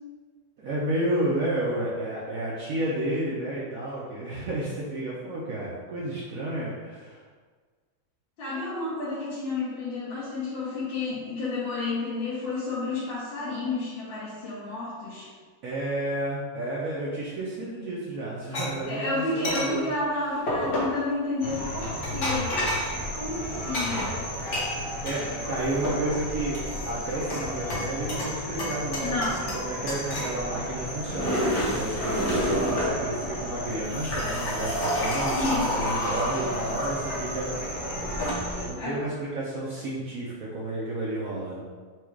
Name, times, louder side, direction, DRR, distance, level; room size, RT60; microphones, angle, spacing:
voice 1, 0.6-7.2 15.6-19.9 25.0-37.5 38.7-41.6, right 1 dB, 65° right, -6 dB, 0.8 m, -31 dB
voice 2, 8.4-15.3 18.8-22.5 23.1-24.1 25.4-25.6 29.0-29.4 35.3-35.7 38.7-39.0, left 3 dB, 80° left, -10 dB, 1.8 m, -31 dB
sound 1, 18.5-18.7 19.4-19.7 20.5-21.0 21.8-22.9 23.7-25.2 25.6-26.2 26.5-27.4 27.7-28.3 28.6-29.6 29.9-30.3 30.9-33.0 33.7-37.2 38.0-38.3, equal, 55° left, 1.5 m, -29 dB
sound 2, 21.4-38.7, equal, 35° left, 1.1 m, -34 dB
4.7 x 2.3 x 4.6 m, 1.5 s
omnidirectional pair, 2.1 m